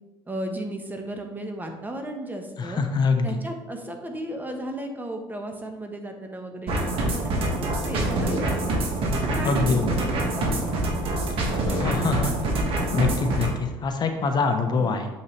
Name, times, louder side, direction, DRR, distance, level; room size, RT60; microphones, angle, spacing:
voice 1, 0.3-2.8 3.2-8.7 9.1-10.6 14.7-15.0, right 1 dB, 15° right, 4 dB, 1.0 m, -35 dB
voice 2, 2.6-3.4 9.4-9.9 11.7-12.3 12.9-15.1, left 4 dB, 40° left, 6 dB, 0.8 m, -24 dB
sound 1, 6.7-13.5, right 1 dB, 55° right, 1.6 m, -25 dB
6.9 x 5.5 x 3.2 m, 1.1 s
supercardioid pair, 95°, 11 cm